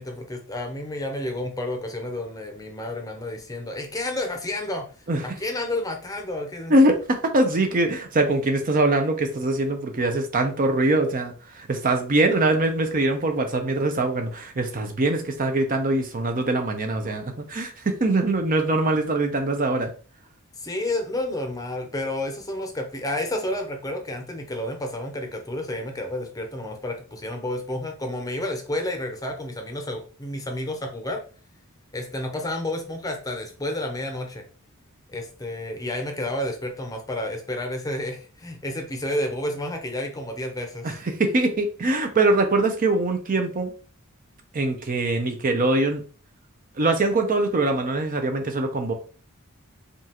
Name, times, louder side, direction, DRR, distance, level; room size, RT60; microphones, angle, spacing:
voice 1, 0.0-4.9 5.4-6.7 20.6-31.2 31.9-34.5 35.1-41.0, left 1 dB, 15° left, 4 dB, 0.7 m, -30 dB
voice 2, 6.7-19.9 40.8-43.7 44.5-46.0 46.8-48.9, right 2 dB, 40° right, 5 dB, 0.6 m, -23 dB
5.1 x 2.4 x 2.9 m, 0.38 s
head